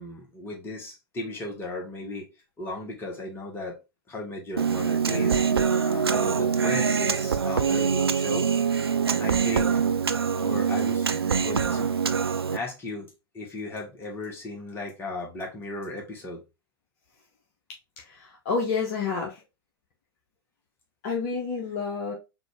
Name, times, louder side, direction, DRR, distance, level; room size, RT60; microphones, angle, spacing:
voice 1, 0.0-2.3 2.6-3.8 4.1-8.7 9.2-9.8 10.4-11.1 11.4-11.9 12.5-16.4, left 2 dB, 15° left, 1.4 m, -36 dB
Human voice, 4.6-12.6, right 6 dB, 80° right, 0.4 m, -24 dB
voice 2, 18.0-19.4 21.0-22.1, left 5 dB, 40° left, 0.9 m, -29 dB
4.1 x 2.6 x 3.3 m
figure-of-eight pair, 105°, 13 cm